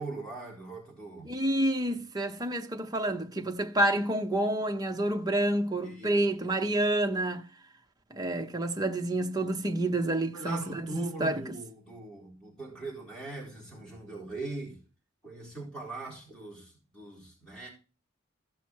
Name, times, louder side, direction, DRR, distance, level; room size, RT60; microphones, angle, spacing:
voice 1, 0.0-1.3 5.8-6.2 10.3-14.8 15.2-17.7, right 3 dB, 5° left, 4.1 m, -41 dB
voice 2, 1.2-7.4 8.1-11.4, right 1 dB, 20° right, 0.8 m, -29 dB
14.5 x 5.9 x 4.6 m
head